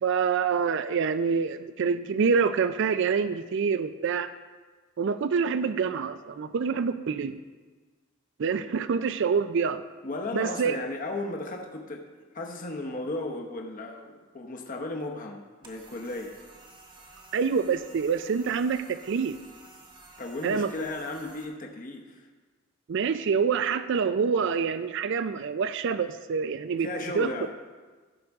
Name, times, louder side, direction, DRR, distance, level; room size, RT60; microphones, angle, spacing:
voice 1, 0.0-4.3 5.0-7.4 8.4-9.8 10.3-10.8 17.3-19.4 20.4-20.7 22.9-26.9 27.1-27.3, right 6 dB, 60° right, 12 dB, 0.4 m, -26 dB
voice 2, 10.0-12.1 12.3-16.4 16.9-17.2 20.2-22.3 26.8-27.5, left 2 dB, 40° left, 2 dB, 0.9 m, -35 dB
sound 1, 15.6-21.4, right 2 dB, 25° right, 1.2 m, -52 dB
15.0 x 6.5 x 3.5 m, 1.4 s
head